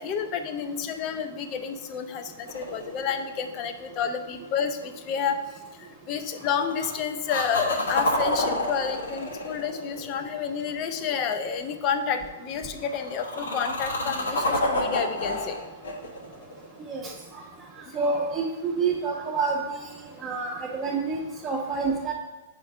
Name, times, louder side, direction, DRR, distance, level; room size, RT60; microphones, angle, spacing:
voice 1, 0.0-5.3 6.1-15.6, left 7 dB, 35° left, 8 dB, 0.5 m, -30 dB
sound 1, 2.5-3.7 6.4-6.9 7.3-10.5 12.8-17.2 20.9-21.0, left 1 dB, 85° left, 1.2 m, -29 dB
voice 2, 17.9-19.6 20.2-22.1, right 4 dB, 25° right, -4 dB, 0.7 m, -27 dB
4.4 x 4.4 x 4.8 m, 1.2 s
hypercardioid pair, 125°, 0 cm